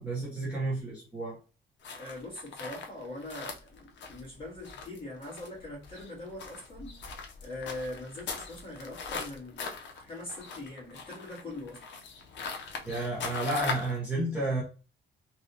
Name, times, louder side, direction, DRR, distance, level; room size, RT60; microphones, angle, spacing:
voice 1, 0.0-1.4 12.8-14.6, right 2 dB, 5° right, 1.0 m, -31 dB
sound 1, 1.8-14.0, left 5 dB, 65° left, 0.6 m, -41 dB
voice 2, 2.0-7.0 7.4-9.7 9.9-11.8, left 1 dB, 25° left, 1.8 m, -42 dB
3.2 x 2.7 x 2.7 m
cardioid pair, 175°, 21 cm